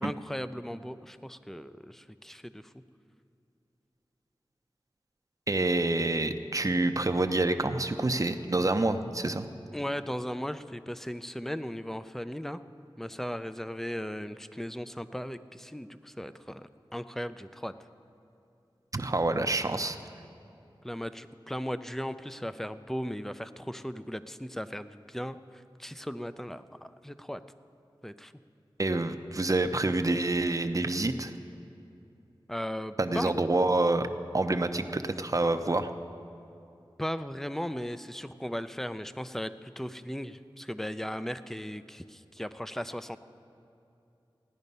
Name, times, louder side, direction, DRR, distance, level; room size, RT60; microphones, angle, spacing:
voice 1, 0.0-2.7 9.7-12.6 13.0-17.7 20.8-27.4 28.0-28.3 32.5-33.3 37.0-43.2, equal, 5° left, 12 dB, 0.5 m, -37 dB
voice 2, 5.5-9.5 18.9-20.0 28.8-31.3 33.0-34.1 34.3-35.9, right 2 dB, 40° right, 8 dB, 0.7 m, -27 dB
16.5 x 10.0 x 5.4 m, 2.8 s
wide cardioid pair, 60°, 9 cm